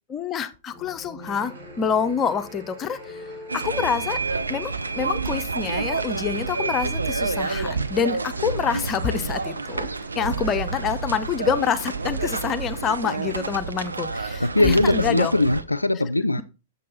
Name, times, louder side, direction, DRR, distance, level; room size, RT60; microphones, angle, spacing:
voice 1, 0.1-3.3 3.5-4.2 4.5-9.9 10.2-15.3, left 7 dB, 25° left, 0.7 m, -27 dB
sound 1, 0.7-6.6, left 2 dB, ahead, 4.9 m, -44 dB
sound 2, 1.2-13.6, right 3 dB, 60° right, 3.4 m, -47 dB
sound 3, 3.5-15.6, right 4 dB, 80° right, 0.6 m, -29 dB
voice 2, 14.4-16.4, left 2 dB, 90° left, 0.3 m, -20 dB
7.5 x 6.6 x 4.1 m
figure-of-eight pair, 105°, 0 cm